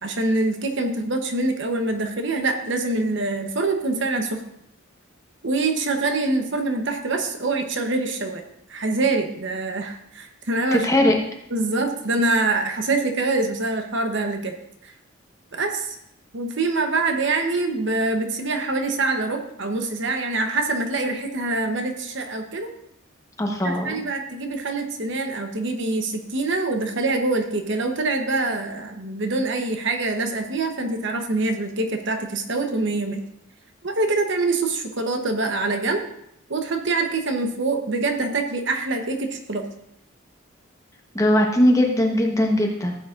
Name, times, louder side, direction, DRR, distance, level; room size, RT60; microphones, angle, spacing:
voice 1, 0.0-4.4 5.4-8.4 8.7-10.9 11.5-14.5 14.8-14.9 15.5-16.0 16.3-22.7 23.6-33.2 33.8-36.0 36.5-39.7, right 2 dB, 60° right, 5 dB, 1.1 m, -25 dB
voice 2, 10.7-11.2 23.4-24.0 41.1-42.9, left 1 dB, 15° left, 2 dB, 1.1 m, -19 dB
15.0 x 8.4 x 2.6 m, 0.76 s
head